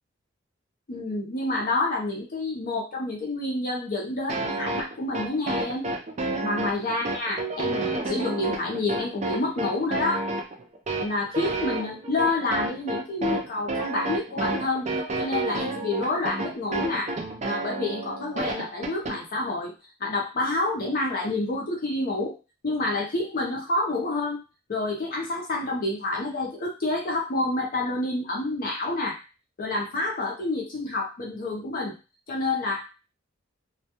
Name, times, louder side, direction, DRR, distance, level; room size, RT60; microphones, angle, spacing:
voice 1, 0.9-5.9 6.4-10.3 11.0-14.9 15.2-17.1 17.5-19.7 20.0-22.4 22.6-24.4 24.7-29.2 29.6-32.0 32.3-32.9, left 2 dB, 45° left, -2 dB, 0.6 m, -28 dB
sound 1, 4.3-19.1, right 2 dB, 35° right, 0.4 m, -30 dB
2.2 x 2.2 x 2.8 m, 0.31 s
head